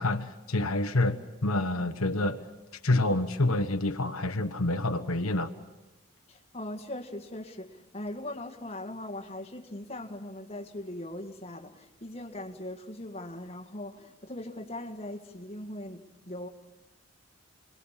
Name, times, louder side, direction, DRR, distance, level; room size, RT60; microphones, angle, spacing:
voice 1, 0.0-2.4 2.8-5.5, left 2 dB, 85° left, 1.3 m, -27 dB
voice 2, 6.3-16.5, left 1 dB, 30° left, 1.8 m, -40 dB
28.5 x 21.0 x 7.4 m
head